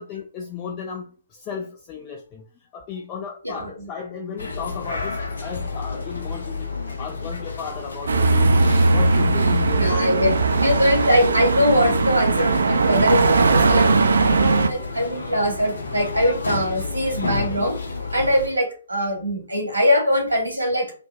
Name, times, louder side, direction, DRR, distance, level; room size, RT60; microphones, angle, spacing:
voice 1, 0.0-2.4 2.7-10.2 10.7-10.9 13.3-13.4, left 7 dB, 25° left, 2 dB, 0.3 m, -35 dB
voice 2, 3.4-3.9 9.7-13.9 14.3-17.8 18.1-20.9, equal, 85° right, 1 dB, 1.4 m, -22 dB
sound 1, 4.4-18.5, left 3 dB, 60° left, 0.7 m, -31 dB
sound 2, 8.1-14.7, right 3 dB, 65° right, 0.4 m, -19 dB
3.2 x 2.1 x 3.0 m, 0.41 s
figure-of-eight pair, 130°, 0 cm